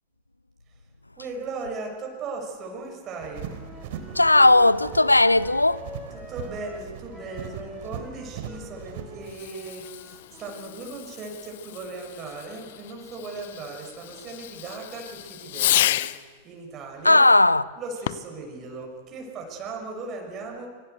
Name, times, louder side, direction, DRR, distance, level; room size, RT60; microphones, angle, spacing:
voice 1, 1.2-3.5 6.1-16.0 16.4-17.3 17.8-20.7, right 3 dB, 30° right, 6.7 m, -37 dB
sound 1, 3.2-9.4, right 8 dB, 50° right, 3.8 m, -40 dB
Wind instrument woodwind instrument, 3.5-10.9, left 2 dB, 5° left, 3.9 m, -46 dB
voice 2, 4.1-5.8 17.0-17.6, left 2 dB, 85° left, 0.7 m, -17 dB
Fireworks, 9.2-16.3 18.0-18.4, left 14 dB, 55° left, 0.8 m, -31 dB
26.5 x 25.5 x 8.3 m
figure-of-eight pair, 90°, 0 cm